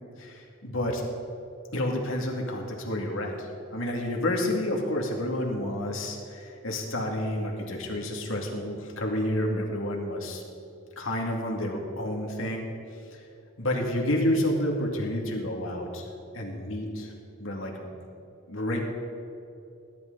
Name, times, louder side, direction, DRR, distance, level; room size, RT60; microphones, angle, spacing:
voice 1, 0.2-1.0 1.7-10.4 11.0-12.7 13.1-13.2 13.6-16.1 16.3-17.1 17.4-18.0 18.5-18.8, left 1 dB, 70° left, 0 dB, 2.3 m, -30 dB
20.5 x 11.0 x 4.0 m, 2.7 s
head